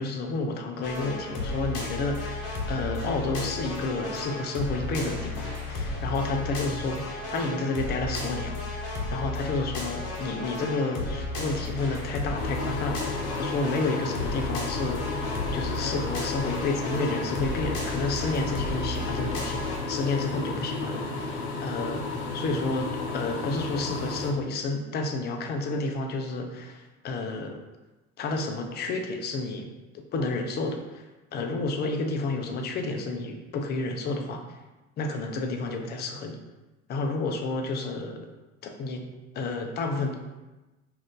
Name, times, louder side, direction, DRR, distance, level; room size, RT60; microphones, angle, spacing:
voice 1, 0.0-27.6 28.2-29.7 30.1-31.0 31.3-34.4 35.0-36.4 36.9-38.3 38.6-39.1 39.3-40.1, left 3 dB, 25° left, 4 dB, 0.4 m, -31 dB
sound 1, 0.8-19.8, left 2 dB, 45° left, 0.8 m, -34 dB
sound 2, 12.4-24.3, left 3 dB, 80° left, 0.6 m, -33 dB
2.5 x 2.5 x 3.5 m, 1.1 s
hypercardioid pair, 75°, 42 cm